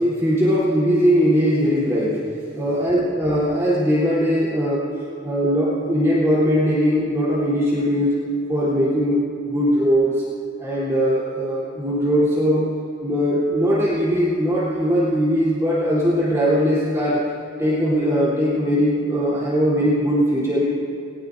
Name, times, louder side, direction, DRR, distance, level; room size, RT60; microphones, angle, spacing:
voice 1, 0.0-2.2 2.5-4.9 5.2-8.1 8.5-10.2 10.6-12.7 13.0-17.2 17.6-20.7, equal, 15° right, -10 dB, 3.4 m, -20 dB
21.0 x 20.0 x 2.7 m, 2.7 s
head